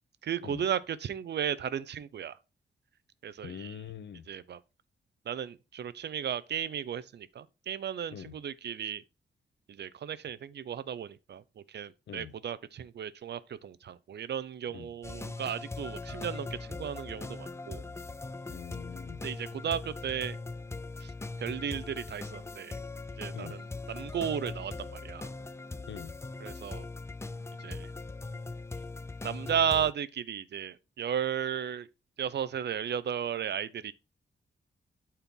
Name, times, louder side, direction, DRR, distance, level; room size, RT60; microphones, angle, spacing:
voice 1, 0.2-2.4 3.2-3.8 4.3-4.6 5.3-9.0 9.7-17.8 19.2-20.4 21.0-21.1 21.4-22.8 23.2-25.3 26.4-26.9 27.6-27.9 29.2-31.9 32.2-33.9, right 8 dB, 75° right, 0.7 m, -35 dB
voice 2, 3.4-4.3 8.1-8.4 12.1-12.3 14.7-14.9 18.5-19.2 23.3-23.5 25.9-26.1, left 8 dB, 80° left, 0.8 m, -43 dB
sound 1, 15.0-29.9, left 3 dB, 15° left, 0.4 m, -40 dB
12.0 x 4.5 x 3.8 m
wide cardioid pair, 110°, 18 cm